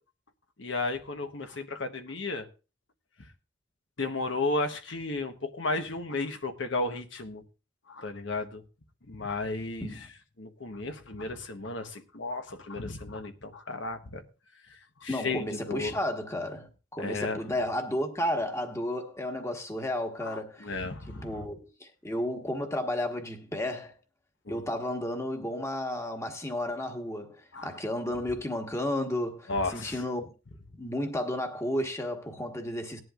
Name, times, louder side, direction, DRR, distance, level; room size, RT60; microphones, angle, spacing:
voice 1, 0.6-2.5 4.0-7.4 7.9-8.6 9.1-9.9 10.4-14.2 14.7-15.9 17.0-17.4 20.2-21.4 24.5-24.6 27.5-27.7 29.5-30.0, left 3 dB, 70° left, 1.1 m, -34 dB
voice 2, 15.1-20.8 21.1-23.9 24.5-30.3 30.8-33.0, left 1 dB, 15° left, 1.4 m, -32 dB
19.0 x 11.0 x 2.5 m
head